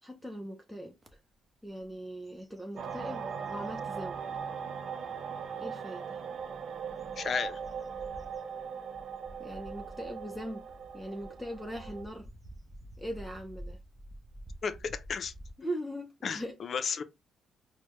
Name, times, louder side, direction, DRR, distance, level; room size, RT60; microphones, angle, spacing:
voice 1, 0.0-1.2 1.6-4.2 5.6-6.2 9.4-10.6 10.9-12.3 13.0-13.8 15.6-16.5, equal, ahead, 0.5 m, -40 dB
sound 1, 1.0-1.1 1.7-1.9 2.2-3.7 4.3-4.4 6.2-15.5, equal, 25° right, 0.8 m, -50 dB
sound 2, 2.8-12.0, right 6 dB, 60° right, 0.4 m, -39 dB
voice 2, 7.2-7.6 14.6-15.3 16.2-17.0, left 6 dB, 50° left, 0.5 m, -33 dB
4.3 x 2.1 x 2.9 m
cardioid pair, 90°, 0 cm